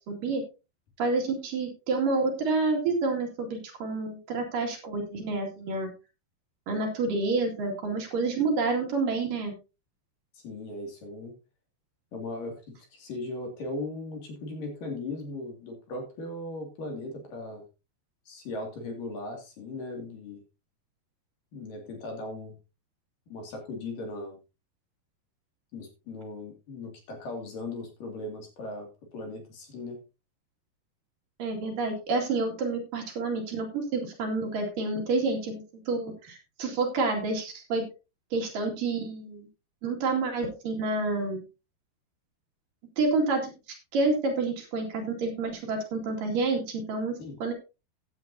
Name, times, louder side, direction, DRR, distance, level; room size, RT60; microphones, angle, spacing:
voice 1, 0.1-0.4 1.0-5.9 6.7-9.5 31.4-37.8 38.3-39.5 39.8-41.4 43.0-43.5 43.9-47.1 47.4-47.5, right 3 dB, 55° right, 2 dB, 3.8 m, -28 dB
voice 2, 10.3-11.3 12.1-17.6 18.3-20.4 21.5-22.6 23.3-24.4 25.7-28.9 29.1-30.0 47.2-47.4, left 2 dB, 55° left, 2 dB, 3.9 m, -38 dB
15.5 x 9.5 x 2.8 m, 0.29 s
omnidirectional pair, 4.7 m